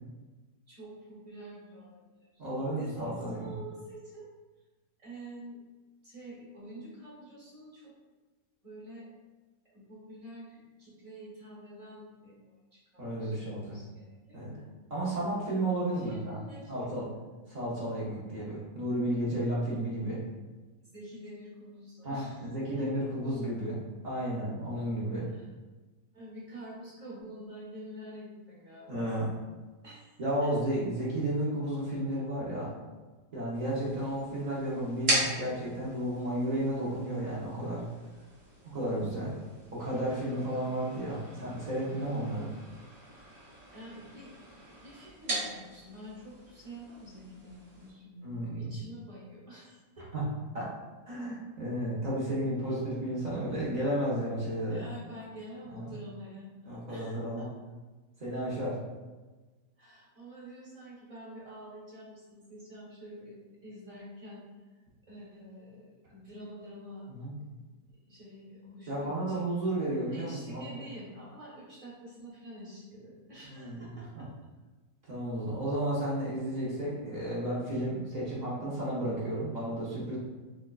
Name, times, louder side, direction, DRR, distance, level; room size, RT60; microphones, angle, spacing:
voice 1, 0.7-2.5 2.8-4.3 5.0-5.6 6.0-7.9 8.6-9.1 9.7-14.7 15.9-17.4 20.8-23.1 25.3-25.5 26.1-29.3 29.8-30.5 40.3-40.6 43.7-50.1 54.7-57.5 59.8-63.4 63.6-64.4 65.1-67.1 68.1-69.4 70.1-74.3, right 1 dB, 30° right, -7 dB, 0.7 m, -48 dB
voice 2, 2.4-3.5 13.0-13.8 14.3-14.5 14.9-16.4 16.7-17.1 17.5-20.2 22.0-23.8 24.0-25.3 28.9-29.3 30.2-32.7 33.3-37.8 38.7-39.3 39.7-42.5 48.2-48.7 50.1-50.2 50.5-50.7 51.1-54.8 55.7-55.9 56.7-57.4 58.2-58.8 67.1-67.3 68.9-70.8 73.5-74.3 75.1-80.2, right 1 dB, 85° right, -7 dB, 0.3 m, -33 dB
sound 1, 33.5-47.9, right 1 dB, 50° right, 1.1 m, -39 dB
4.4 x 2.4 x 2.3 m, 1.2 s
omnidirectional pair, 1.9 m